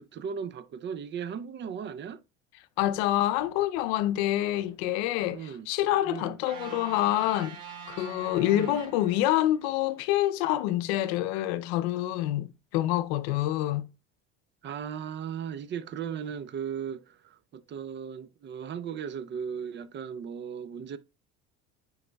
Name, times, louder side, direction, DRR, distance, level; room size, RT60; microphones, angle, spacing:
voice 1, 0.0-2.2 5.3-5.7 6.0-6.4 8.5-8.9 14.6-21.0, right 7 dB, 35° right, 0.5 m, -37 dB
voice 2, 2.8-7.6 7.9-13.9, left 14 dB, 85° left, 0.6 m, -27 dB
sound 1, 6.5-9.7, right 6 dB, 75° right, 2.1 m, -44 dB
9.5 x 4.7 x 2.2 m
supercardioid pair, 95°, 31 cm